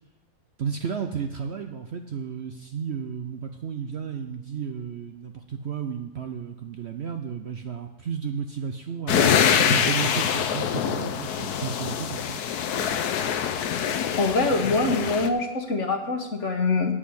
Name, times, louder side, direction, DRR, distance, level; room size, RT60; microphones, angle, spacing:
voice 1, 0.6-12.4, right 6 dB, 55° right, 6 dB, 0.8 m, -33 dB
sound 1, 9.1-15.3, left 8 dB, 80° left, 1.3 m, -25 dB
voice 2, 14.2-16.9, left 3 dB, 50° left, 4 dB, 1.5 m, -24 dB
8.3 x 7.2 x 8.5 m, 1.0 s
omnidirectional pair, 1.6 m